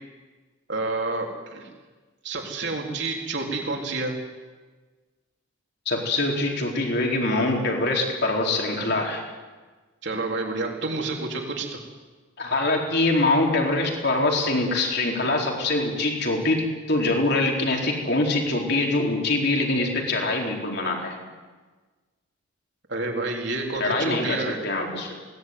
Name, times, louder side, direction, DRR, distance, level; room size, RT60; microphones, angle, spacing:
voice 1, 0.7-1.7 2.2-4.1 10.0-11.8 22.9-24.6, right 3 dB, 55° right, 1 dB, 3.9 m, -29 dB
voice 2, 5.9-9.2 12.4-21.2 23.8-24.4 24.6-25.1, left 2 dB, 50° left, 1 dB, 4.2 m, -24 dB
21.5 x 18.0 x 9.6 m, 1.3 s
head